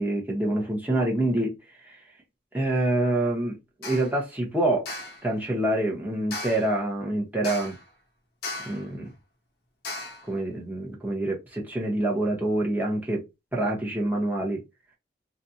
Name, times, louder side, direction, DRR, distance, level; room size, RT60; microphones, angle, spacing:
voice 1, 0.0-1.6 1.8-2.0 2.5-4.9 5.2-7.7 8.7-9.1 10.2-13.2 13.5-14.6, right 1 dB, 10° right, 1.1 m, -26 dB
sound 1, 3.8-4.1 4.9-5.2 6.3-6.8 7.4-7.9 8.4-8.9 9.8-10.3, left 2 dB, 55° left, 0.8 m, -36 dB
4.2 x 2.3 x 2.7 m
head